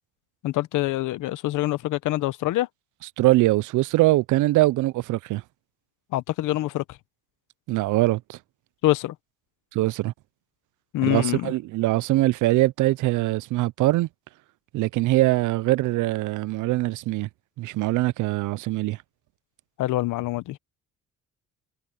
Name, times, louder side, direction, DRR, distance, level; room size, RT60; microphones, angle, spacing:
voice 1, 0.4-2.7 6.1-6.8 8.8-9.1 10.9-11.5 19.8-20.6, left 16 dB, 90° left, 1.0 m, -25 dB
voice 2, 3.2-5.4 7.7-8.4 9.7-10.1 11.0-14.1 14.7-17.3 17.6-19.0, right 18 dB, 80° right, 0.5 m, -22 dB
cardioid pair, 90°, 30 cm